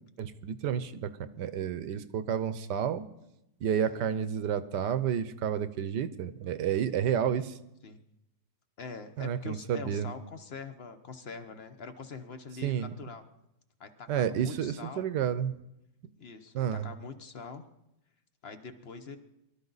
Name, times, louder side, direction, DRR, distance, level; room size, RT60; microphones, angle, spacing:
voice 1, 0.2-1.1 1.4-3.1 3.6-7.6 9.2-10.1 12.6-12.9 14.1-15.5 16.5-16.9, right 8 dB, 75° right, 13 dB, 1.4 m, -30 dB
voice 2, 8.8-13.2 13.8-15.1 16.2-17.6 18.4-19.2, left 5 dB, 40° left, 9 dB, 1.0 m, -44 dB
23.5 x 12.5 x 4.0 m, 0.87 s
omnidirectional pair, 1.9 m